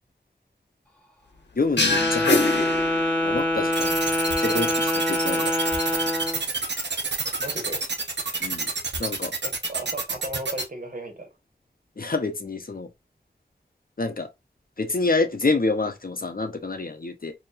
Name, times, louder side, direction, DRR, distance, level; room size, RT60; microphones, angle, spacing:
voice 1, 1.6-2.7 3.2-4.0 4.4-5.5 8.4-8.7 9.0-9.3 12.0-12.9 14.0-14.3 14.8-17.3, left 3 dB, 55° left, 0.7 m, -27 dB
sound 1, 1.8-3.5, left 3 dB, 85° left, 0.9 m, -24 dB
Wind instrument woodwind instrument, 1.8-6.4, left 1 dB, 5° left, 1.2 m, -25 dB
sound 2, 3.7-10.6, right 4 dB, 85° right, 0.8 m, -28 dB
voice 2, 7.4-7.8 9.4-11.3, right 1 dB, 50° right, 1.5 m, -36 dB
4.2 x 2.9 x 2.5 m
wide cardioid pair, 45°, 18 cm